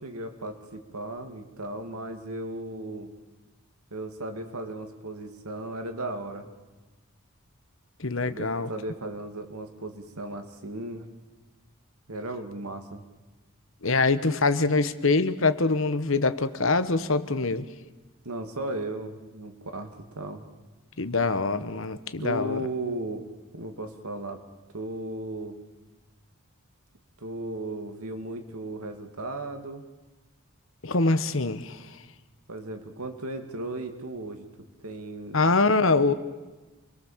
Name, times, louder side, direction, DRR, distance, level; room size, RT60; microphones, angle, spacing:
voice 1, 0.0-3.1 3.9-6.5 8.2-11.1 12.1-13.0 18.2-20.4 22.2-23.3 23.5-24.4 24.7-25.6 27.2-29.8 32.5-34.5 34.8-35.4, right 1 dB, 85° right, 6 dB, 2.5 m, -36 dB
voice 2, 8.0-8.7 13.8-17.7 21.0-22.6 30.8-31.8 35.3-36.1, left 3 dB, 60° left, 12 dB, 1.2 m, -24 dB
28.0 x 22.0 x 7.4 m, 1.2 s
head